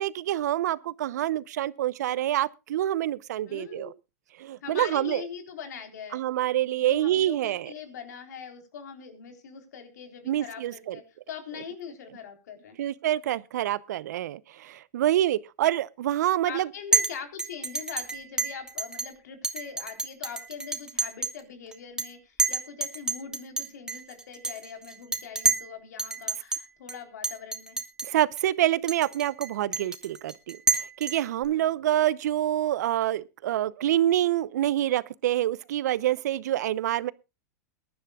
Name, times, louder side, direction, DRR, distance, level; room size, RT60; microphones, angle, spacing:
voice 1, 0.0-3.9 4.4-5.2 6.1-7.7 10.3-11.0 12.8-16.7 28.0-37.1, right 13 dB, 75° right, 0.8 m, -26 dB
voice 2, 3.5-3.9 4.6-6.2 6.8-12.8 16.5-27.8 31.4-32.0, left 7 dB, 80° left, 4.0 m, -42 dB
Chink clink, 16.9-17.1 17.4-19.1 19.4-21.4 21.7-22.1 22.4-25.7 26.0-26.6 26.9-27.0 27.2-28.1 28.4-28.5 28.9-31.5, right 3 dB, 5° right, 2.1 m, -28 dB
22.0 x 11.5 x 2.4 m
hypercardioid pair, 125°, 9 cm